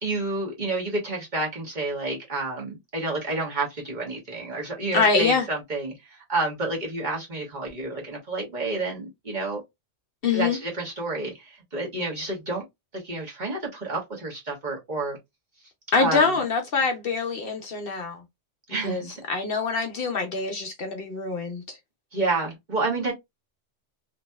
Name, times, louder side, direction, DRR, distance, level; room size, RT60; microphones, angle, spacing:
voice 1, 0.0-9.6 10.3-12.6 12.9-15.2 16.0-16.4 18.7-19.2 22.1-23.1, right 2 dB, 40° right, 1.3 m, -29 dB
voice 2, 4.9-5.4 10.2-10.6 15.9-18.2 18.8-21.8, left 4 dB, 60° left, 0.8 m, -25 dB
3.0 x 2.7 x 2.2 m
omnidirectional pair, 1.2 m